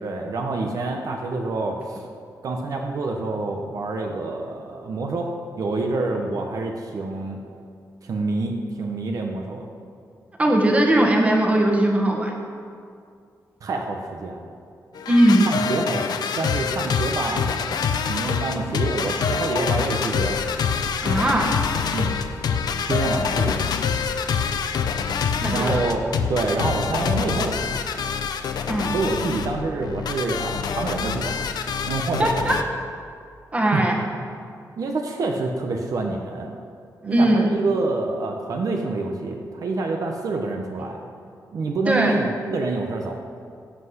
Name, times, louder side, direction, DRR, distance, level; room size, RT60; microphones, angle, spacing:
voice 1, 0.0-2.0 2.4-5.3 5.5-7.4 8.0-9.7 13.6-14.5 15.5-17.4 18.1-20.4 21.9-22.1 22.9-23.6 25.5-27.9 28.9-31.4 31.9-32.3 33.7-33.8 34.8-36.5 37.0-41.0 41.5-43.1, right 3 dB, 60° right, 2 dB, 1.1 m, -27 dB
voice 2, 10.4-12.3 15.1-15.5 21.0-21.5 25.4-25.8 28.7-28.9 32.2-32.6 33.5-34.0 37.0-37.5 41.9-42.2, right 1 dB, 20° right, 0 dB, 1.6 m, -19 dB
sound 1, 14.9-32.6, left 6 dB, 85° left, 0.8 m, -26 dB
17.5 x 5.8 x 8.0 m, 2.3 s
wide cardioid pair, 175°, 7 cm